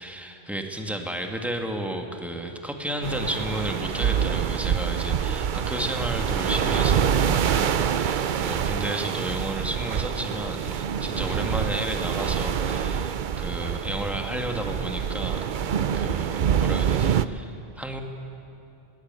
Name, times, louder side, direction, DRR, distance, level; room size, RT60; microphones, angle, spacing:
voice 1, 0.0-15.5 15.9-18.0, right 1 dB, ahead, 3 dB, 1.8 m, -32 dB
sound 1, 3.0-17.3, right 8 dB, 55° right, 0.7 m, -26 dB
20.5 x 19.0 x 9.0 m, 2.8 s
omnidirectional pair, 1.0 m